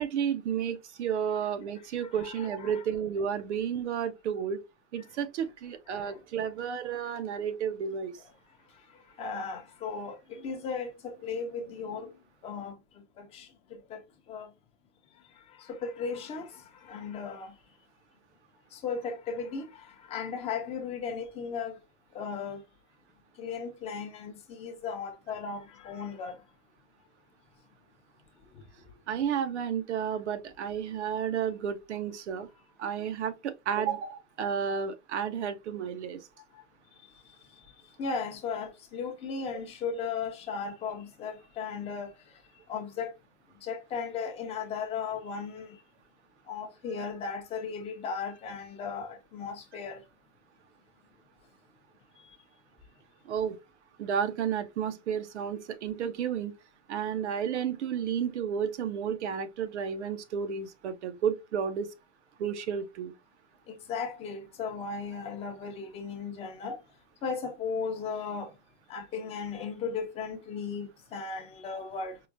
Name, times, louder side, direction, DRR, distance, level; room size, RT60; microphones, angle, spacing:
voice 1, 0.0-4.6 4.9-8.1 29.1-32.5 32.8-36.2 53.3-53.6 54.0-56.5 56.9-61.9 62.4-63.1 66.7-66.8, right 8 dB, 90° right, 0.8 m, -32 dB
voice 2, 2.0-2.8 5.9-6.2 8.7-14.0 14.3-14.5 15.2-17.6 18.7-21.8 22.1-22.6 23.3-26.4 28.5-28.6 32.5-32.6 36.5-36.6 37.0-37.2 37.5-43.1 43.6-45.8 46.5-50.0 52.2-52.4 63.7-66.8 67.2-68.6 68.9-72.2, left 5 dB, 20° left, 0.5 m, -37 dB
4.7 x 2.2 x 2.5 m
supercardioid pair, 155°, 34 cm